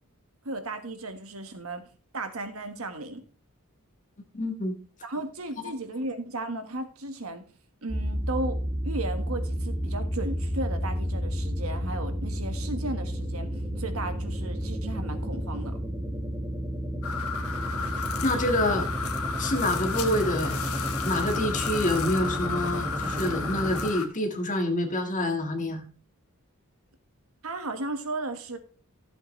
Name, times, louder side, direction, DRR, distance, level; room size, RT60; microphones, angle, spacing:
voice 1, 0.4-1.9 2.1-3.2 5.0-7.4 7.8-15.8 27.4-28.6, right 2 dB, 70° right, 7 dB, 1.5 m, -35 dB
voice 2, 4.3-4.7 18.2-18.9 19.4-25.9, left 1 dB, 35° left, 5 dB, 1.6 m, -27 dB
sound 1, 7.9-23.9, equal, 15° right, 1.4 m, -31 dB
sound 2, 17.0-24.1, left 5 dB, 75° left, 1.4 m, -33 dB
14.0 x 7.7 x 3.2 m, 0.39 s
head